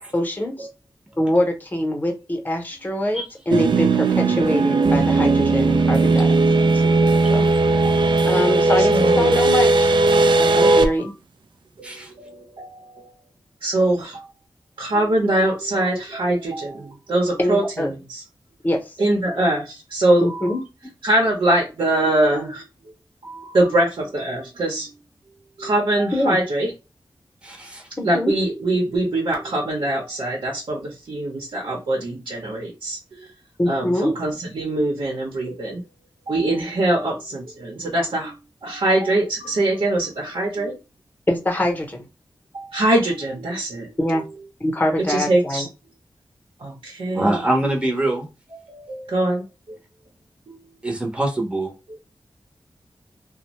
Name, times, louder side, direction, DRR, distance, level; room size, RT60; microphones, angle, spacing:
voice 1, 0.1-0.7 1.2-6.7 7.3-7.5 8.3-10.0 10.4-11.1 17.4-17.9 18.6-18.9 20.2-20.6 26.1-26.4 28.0-28.3 33.6-34.1 41.3-42.1 44.0-44.2 44.6-45.7, left 1 dB, 20° left, 2 dB, 0.8 m, -23 dB
sound 1, 3.5-10.9, right 3 dB, 65° right, 0.3 m, -17 dB
voice 2, 7.0-7.4 8.8-9.4 10.2-11.1 11.8-13.1 13.6-14.3 14.8-18.2 19.0-20.6 21.0-22.9 23.2-25.0 25.6-26.7 28.0-33.3 33.7-35.8 36.3-40.8 42.5-44.2 45.0-45.7 46.6-47.5 48.5-49.8 50.5-50.6 51.9-52.1, right 1 dB, 85° right, -3 dB, 0.8 m, -23 dB
voice 3, 27.4-27.9 47.1-48.3 50.8-51.7, right 1 dB, 15° right, 0 dB, 0.7 m, -24 dB
2.6 x 2.1 x 3.1 m, 0.28 s
wide cardioid pair, 105°, 9 cm